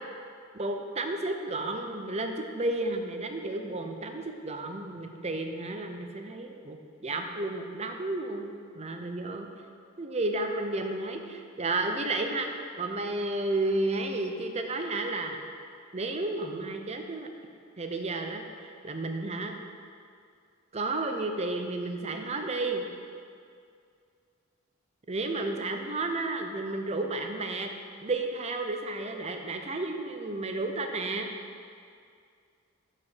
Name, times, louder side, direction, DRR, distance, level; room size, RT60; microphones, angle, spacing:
voice 1, 0.5-9.5 10.0-12.5 12.8-15.4 15.9-17.3 17.8-19.5 20.7-22.8 25.1-27.7 28.0-31.3, right 2 dB, 30° right, 4 dB, 0.7 m, -32 dB
9.6 x 4.9 x 5.8 m, 2.3 s
head